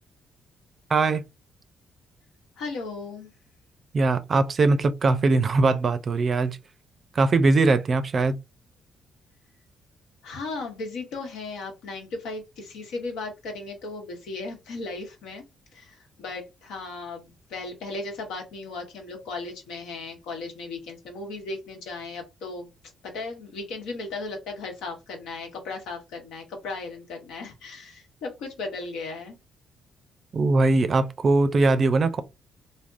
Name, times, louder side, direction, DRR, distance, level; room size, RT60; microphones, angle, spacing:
voice 1, 0.9-1.2 3.9-6.6 7.2-8.4 30.3-32.2, right 3 dB, 45° right, 0.4 m, -21 dB
voice 2, 2.6-3.3 10.2-15.4 15.7-22.7 23.0-29.4, left 3 dB, 90° left, 1.0 m, -36 dB
3.3 x 2.1 x 2.5 m
cardioid pair, 90°, 0 cm